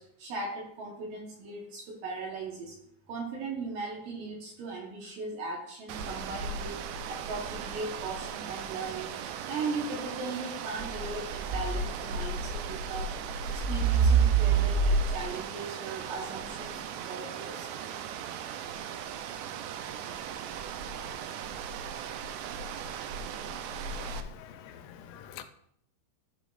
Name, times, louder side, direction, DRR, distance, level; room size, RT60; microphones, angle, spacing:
voice 1, 0.0-2.8 3.1-6.8 7.1-9.2 9.4-13.1 13.4-16.8 17.1-17.8, right 3 dB, 70° right, 2.4 m, -38 dB
sound 1, 5.9-24.2, right 5 dB, 85° right, 2.7 m, -32 dB
voice 2, 23.9-25.4, left 7 dB, 85° left, 2.8 m, -46 dB
13.5 x 5.1 x 2.4 m
omnidirectional pair, 4.9 m